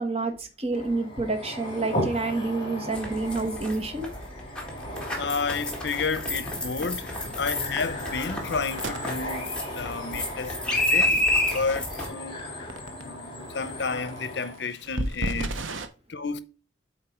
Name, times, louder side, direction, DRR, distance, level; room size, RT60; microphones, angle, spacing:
voice 1, 0.0-4.1, right 3 dB, 30° right, 1.2 m, -28 dB
sound 1, 0.7-14.7, left 1 dB, 25° left, 2.6 m, -37 dB
sound 2, 2.9-12.1, left 1 dB, 5° left, 1.7 m, -29 dB
voice 2, 5.2-11.2 11.5-12.4 13.0-15.8 16.1-16.4, left 4 dB, 65° left, 0.7 m, -31 dB
sound 3, 6.1-6.2 6.6-6.8 7.3-10.2 12.4-12.5 12.7-13.0 13.9-15.9, right 2 dB, 90° right, 0.9 m, -35 dB
8.2 x 4.4 x 4.3 m
head